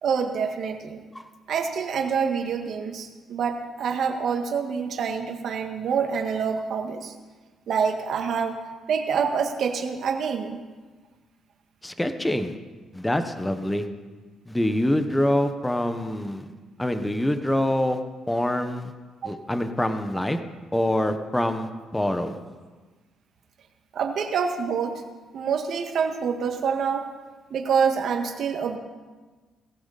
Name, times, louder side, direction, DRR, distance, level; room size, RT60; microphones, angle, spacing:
voice 1, 0.0-1.0 1.5-7.1 7.7-8.6 8.9-10.6 19.2-19.3 23.9-25.0 25.3-27.1 27.5-28.8, right 6 dB, 65° right, 4 dB, 1.9 m, -26 dB
voice 2, 11.8-12.5 12.9-13.9 14.5-16.4 16.8-18.0 18.3-18.9 19.2-20.4 20.7-22.4, left 1 dB, 10° left, 8 dB, 1.3 m, -25 dB
18.5 x 16.0 x 4.2 m, 1.3 s
cardioid pair, 90°, 0 cm